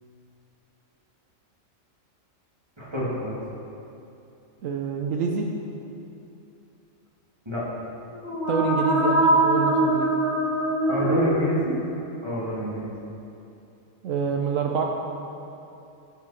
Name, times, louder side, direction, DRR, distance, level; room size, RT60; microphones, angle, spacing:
voice 1, 2.8-3.4 7.5-7.6 10.9-11.7 12.2-12.9, right 1 dB, 20° right, -7 dB, 2.6 m, -27 dB
voice 2, 4.6-5.5 8.5-10.1 14.0-14.8, right 5 dB, 80° right, 1 dB, 1.2 m, -27 dB
sound 1, 8.1-12.0, right 1 dB, 60° right, 2.4 m, -23 dB
17.5 x 6.7 x 4.4 m, 2.8 s
omnidirectional pair, 1.4 m